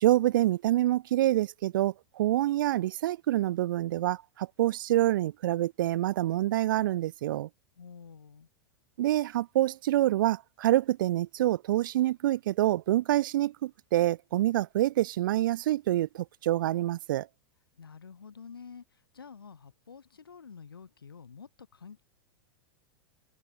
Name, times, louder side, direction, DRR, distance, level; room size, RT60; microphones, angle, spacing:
voice 1, 0.0-7.5 9.0-17.3, right 14 dB, 65° right, 0.6 m, -26 dB
voice 2, 7.8-8.5 17.8-22.0, left 6 dB, 85° left, 5.3 m, -49 dB
hypercardioid pair, 100°, 12 cm